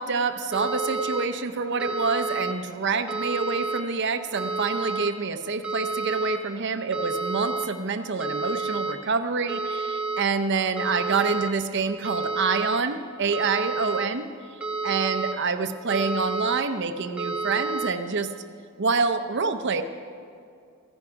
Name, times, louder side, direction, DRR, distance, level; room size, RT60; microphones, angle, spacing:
voice 1, 0.0-14.3 14.8-18.3 18.8-19.8, right 4 dB, 55° right, 9 dB, 0.7 m, -27 dB
sound 1, 0.5-1.2 1.8-2.5 3.1-3.8 4.4-5.1 5.6-6.4 6.9-7.6 8.2-8.9 9.5-10.2 10.8-11.5 12.0-12.8 13.3-14.1 14.6-15.3 15.9-16.6 17.2-17.9, right 3 dB, 5° right, 0.8 m, -30 dB
15.0 x 11.0 x 4.8 m, 2.3 s
head